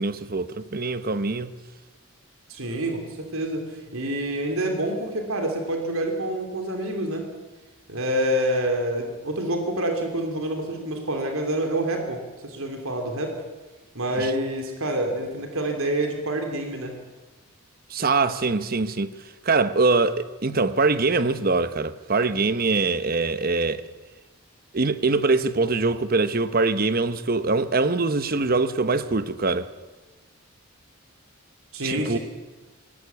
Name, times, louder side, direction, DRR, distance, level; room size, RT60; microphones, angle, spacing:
voice 1, 0.0-1.5 14.2-14.3 17.9-19.1 19.4-23.9 24.7-29.7 31.8-32.2, right 3 dB, 45° right, 0.9 m, -23 dB
voice 2, 2.5-7.3 7.9-13.4 13.9-16.9 31.7-32.2, right 1 dB, 75° right, 3.0 m, -27 dB
18.0 x 17.5 x 8.3 m
head